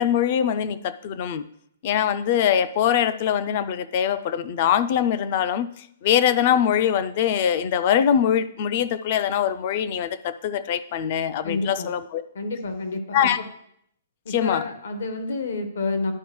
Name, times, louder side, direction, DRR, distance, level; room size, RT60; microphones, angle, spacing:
voice 1, 0.0-1.4 1.8-5.7 6.0-12.2 13.1-13.4 14.3-14.6, left 9 dB, 30° left, 13 dB, 0.3 m, -22 dB
voice 2, 11.4-11.9 12.3-13.4 14.2-16.1, left 3 dB, 70° left, 7 dB, 1.3 m, -29 dB
11.5 x 5.0 x 3.1 m, 0.71 s
hypercardioid pair, 180°, 0 cm